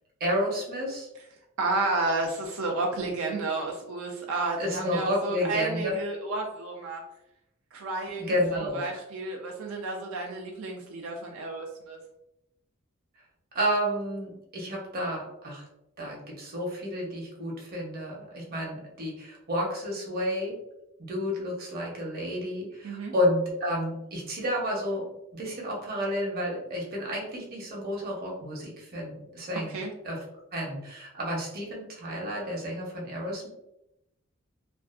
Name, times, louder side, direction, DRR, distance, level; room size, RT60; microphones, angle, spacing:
voice 1, 0.2-1.1 4.6-5.9 8.2-8.8 13.5-15.6 16.0-20.6 21.1-25.1 25.3-29.7 30.0-30.2 30.5-33.5, equal, 50° right, -1 dB, 0.7 m, -31 dB
voice 2, 1.6-7.0 7.7-8.3 8.7-12.0 22.8-23.1 29.7-29.9, right 2 dB, 85° right, 1 dB, 0.4 m, -31 dB
2.5 x 2.3 x 2.4 m, 0.84 s
head